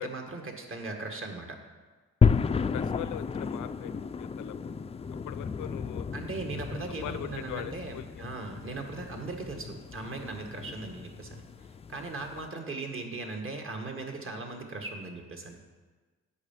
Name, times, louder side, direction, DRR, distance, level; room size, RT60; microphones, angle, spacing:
voice 1, 0.0-1.5 6.1-11.4 11.9-15.6, right 3 dB, 45° right, 3 dB, 1.8 m, -38 dB
sound 1, 2.2-12.5, left 6 dB, 20° left, 0.3 m, -32 dB
voice 2, 2.5-3.9 4.2-4.6 5.3-6.1 6.7-8.2, left 13 dB, 80° left, 14 dB, 0.6 m, -41 dB
9.7 x 5.6 x 7.3 m, 1.3 s
cardioid pair, 90°, 30 cm